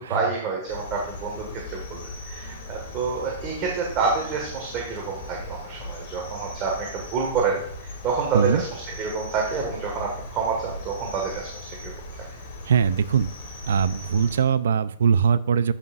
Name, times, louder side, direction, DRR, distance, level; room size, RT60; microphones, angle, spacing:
voice 1, 0.0-12.2, right 5 dB, 25° right, -1 dB, 1.7 m, -28 dB
Cricket, 0.7-14.4, left 1 dB, 50° left, 2.8 m, -38 dB
voice 2, 12.7-13.3 13.7-15.7, right 7 dB, 85° right, 15 dB, 0.5 m, -21 dB
13.5 x 5.6 x 2.5 m, 0.66 s
hypercardioid pair, 155°, 0 cm